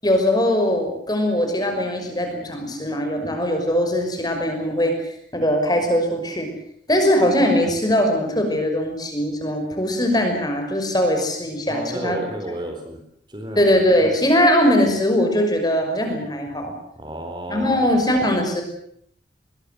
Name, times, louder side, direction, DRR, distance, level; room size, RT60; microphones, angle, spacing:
voice 1, 0.0-4.9 5.3-6.5 6.9-12.2 13.6-16.7 17.5-18.6, equal, 20° left, 4 dB, 5.8 m, -20 dB
voice 2, 11.7-13.0 13.3-13.8 17.0-17.8, right 1 dB, 25° right, 4 dB, 3.9 m, -31 dB
22.0 x 22.0 x 7.8 m, 0.66 s
head